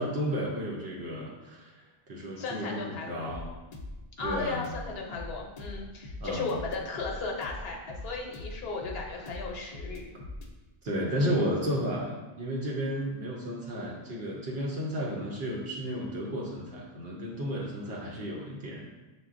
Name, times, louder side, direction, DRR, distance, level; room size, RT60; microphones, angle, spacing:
voice 1, 0.0-1.8 2.1-3.5 4.2-4.6 6.2-6.5 10.8-18.9, equal, 75° right, -4 dB, 0.9 m, -32 dB
voice 2, 2.4-3.2 4.2-10.1, left 4 dB, 75° left, 0 dB, 0.8 m, -36 dB
sound 1, 3.3-10.5, left 2 dB, 55° left, 0.5 m, -42 dB
6.6 x 2.2 x 2.4 m, 1.2 s
omnidirectional pair, 1.1 m